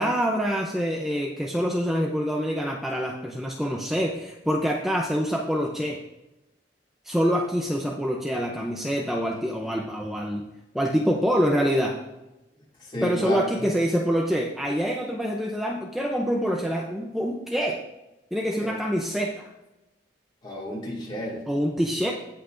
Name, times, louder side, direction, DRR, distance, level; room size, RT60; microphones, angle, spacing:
voice 1, 0.0-6.0 7.0-10.4 10.7-12.0 13.0-17.8 18.3-19.3 21.5-22.1, equal, ahead, -1 dB, 0.6 m, -26 dB
voice 2, 12.8-13.7 18.6-18.7 20.4-21.4, equal, 25° left, -4 dB, 2.7 m, -32 dB
16.5 x 5.8 x 2.6 m, 0.97 s
head